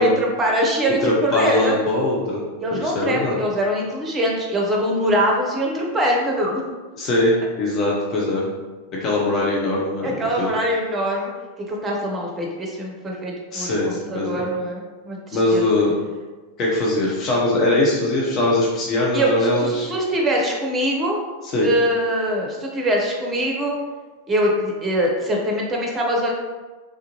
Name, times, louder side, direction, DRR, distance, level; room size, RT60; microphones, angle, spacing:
voice 1, 0.0-1.8 2.6-6.6 10.0-11.3 11.7-15.6 19.1-21.2 21.6-23.8 24.3-26.3, equal, 20° right, -1 dB, 0.7 m, -23 dB
voice 2, 1.0-2.4 2.7-3.4 7.0-8.5 9.0-10.5 13.5-14.4 15.3-15.9 16.6-19.9 21.5-21.7, left 2 dB, 35° left, -4 dB, 0.7 m, -21 dB
3.2 x 2.5 x 3.0 m, 1.3 s
figure-of-eight pair, 90°, 0 cm